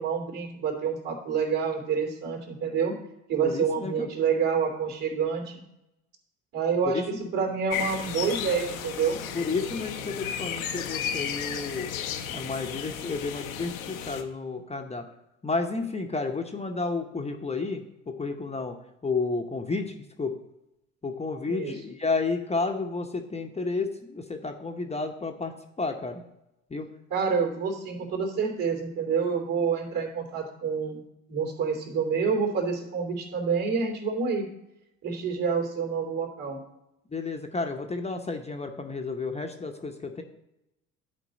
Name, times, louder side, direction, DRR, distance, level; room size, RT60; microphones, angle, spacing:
voice 1, 0.0-3.0 3.3-5.6 6.5-9.2 21.5-21.7 27.1-31.0 31.3-34.5 35.0-36.6, right 6 dB, 55° right, 2 dB, 2.9 m, -28 dB
voice 2, 3.4-4.1 6.8-7.2 9.3-11.9 12.3-15.0 15.4-18.8 19.0-20.3 21.0-25.5 25.8-26.2 26.7-26.9 37.1-40.2, left 3 dB, 15° left, 4 dB, 0.8 m, -31 dB
sound 1, 7.7-14.2, left 8 dB, 85° left, 0.9 m, -34 dB
11.0 x 4.5 x 4.0 m, 0.88 s
hypercardioid pair, 65°, 40 cm